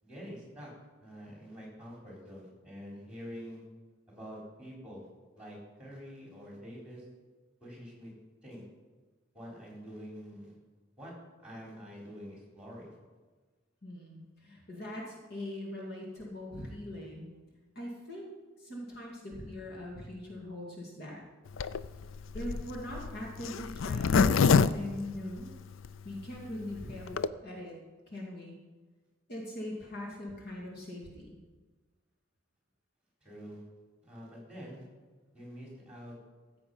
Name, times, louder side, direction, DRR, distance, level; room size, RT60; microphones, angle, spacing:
voice 1, 0.0-0.7 1.0-3.6 4.1-5.1 5.4-7.0 7.6-8.1 8.4-8.6 9.3-10.6 11.0-11.1 11.4-12.9 33.2-33.6 34.0-34.9 35.3-36.1, equal, 5° right, -3 dB, 4.1 m, -46 dB
voice 2, 13.8-17.3 17.8-18.3 18.6-21.2 22.3-25.5 26.0-27.8 28.1-28.6 29.3-31.4, left 1 dB, 50° left, -2 dB, 2.3 m, -41 dB
Zipper (clothing), 21.5-25.9 26.4-26.5 26.6-26.7 26.9-27.3, left 5 dB, 70° left, 0.4 m, -26 dB
15.0 x 7.8 x 5.6 m, 1.3 s
head